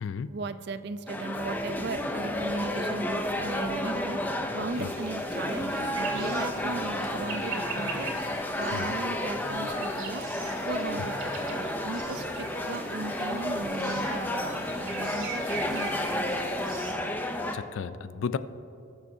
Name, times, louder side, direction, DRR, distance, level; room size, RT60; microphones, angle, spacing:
voice 1, 0.3-4.2 4.5-8.1 8.6-10.2 10.7-15.4 15.7-16.4, right 3 dB, 55° right, 12 dB, 0.4 m, -37 dB
sound 1, 1.1-17.5, left 1 dB, 10° left, 0.5 m, -31 dB
sound 2, 1.4-13.6, right 1 dB, 15° right, 1.0 m, -51 dB
sound 3, 4.7-16.9, right 4 dB, 85° right, 2.2 m, -42 dB
voice 2, 17.5-18.4, left 6 dB, 70° left, 14 dB, 0.4 m, -33 dB
19.5 x 6.9 x 2.7 m, 2.7 s
head